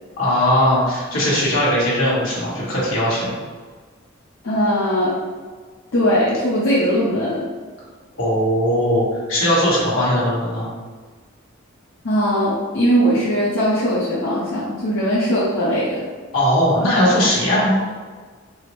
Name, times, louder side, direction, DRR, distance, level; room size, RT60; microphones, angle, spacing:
voice 1, 0.2-3.3 8.2-10.7 16.3-17.8, equal, 80° left, -7 dB, 1.5 m, -19 dB
voice 2, 4.4-5.1 5.9-7.4 12.0-16.0, equal, 65° left, -9 dB, 0.7 m, -19 dB
4.7 x 2.0 x 3.1 m, 1.5 s
head